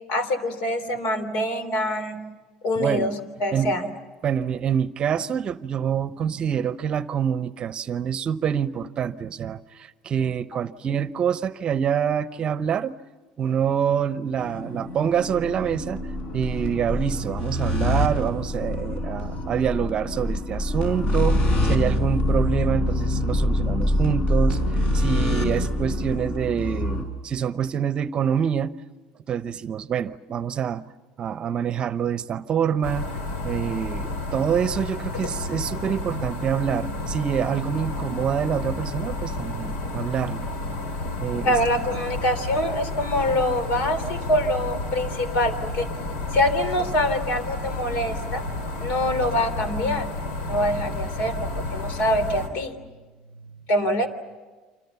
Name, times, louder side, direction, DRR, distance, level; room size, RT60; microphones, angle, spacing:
voice 1, 0.1-2.2 2.6-3.1 3.4-3.9 41.4-45.9 46.3-48.4 48.8-50.1 50.5-52.8 53.7-54.1, left 1 dB, 65° left, 3.5 m, -24 dB
voice 2, 2.8-3.1 3.5-3.7 4.2-12.9 13.4-16.0 16.3-24.6 24.9-28.7 29.3-30.8 31.2-33.1 33.4-40.5 41.2-41.6 43.8-43.9, right 8 dB, 35° right, 0.8 m, -26 dB
sound 1, 14.4-27.0, left 1 dB, 40° left, 4.5 m, -26 dB
Piano, 21.3-26.9, right 1 dB, ahead, 4.8 m, -30 dB
sound 2, 32.8-52.5, left 2 dB, 80° left, 4.6 m, -31 dB
29.5 x 26.0 x 7.1 m
cardioid pair, 130°, 3 cm